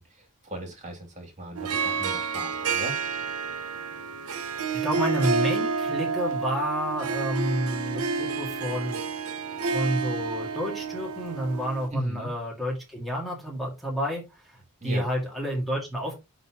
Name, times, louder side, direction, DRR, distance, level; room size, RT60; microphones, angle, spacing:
voice 1, 0.0-3.0 11.9-12.3 14.8-15.1, right 1 dB, 35° right, 2 dB, 2.9 m, -37 dB
Harp, 1.6-11.9, right 4 dB, 80° right, 0.9 m, -29 dB
voice 2, 4.3-9.0 9.7-16.1, equal, ahead, -3 dB, 2.2 m, -30 dB
11.0 x 4.0 x 3.0 m, 0.24 s
head